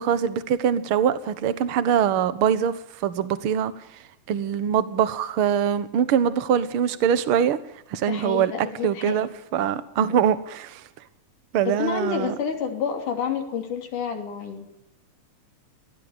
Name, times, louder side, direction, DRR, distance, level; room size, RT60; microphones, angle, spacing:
voice 1, 0.0-7.6 7.9-8.5 8.8-10.8 11.5-12.3, right 8 dB, 55° right, 13 dB, 1.8 m, -23 dB
voice 2, 8.1-9.3 11.7-14.7, left 6 dB, 90° left, 3 dB, 4.4 m, -29 dB
22.5 x 17.0 x 9.1 m, 0.82 s
omnidirectional pair, 3.5 m